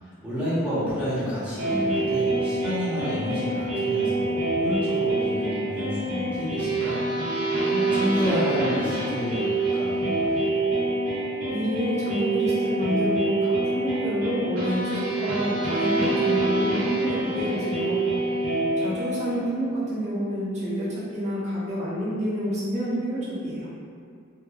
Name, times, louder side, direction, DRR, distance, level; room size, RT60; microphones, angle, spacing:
voice 1, 0.2-6.9 7.6-10.3, equal, 5° right, -13 dB, 0.8 m, -29 dB
sound 1, 1.6-19.4, right 2 dB, 80° right, 1.1 m, -26 dB
voice 2, 11.5-18.1 18.8-23.7, equal, 35° right, -11 dB, 1.0 m, -28 dB
2.9 x 2.2 x 2.3 m, 2.3 s
head